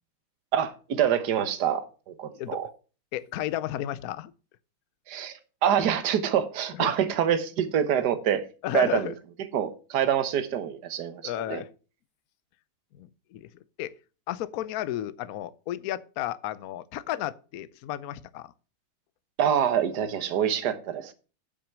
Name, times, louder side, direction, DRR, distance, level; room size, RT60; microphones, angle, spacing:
voice 1, 0.5-2.7 5.1-8.4 8.7-9.1 9.5-11.2 11.5-11.6 19.4-21.1, right 9 dB, 55° right, 1.6 m, -26 dB
voice 2, 3.1-4.3 6.7-6.9 8.6-9.1 11.2-11.7 13.0-13.5 13.8-13.9 14.3-18.5, left 12 dB, 80° left, 0.8 m, -33 dB
8.3 x 6.0 x 7.3 m
omnidirectional pair, 2.3 m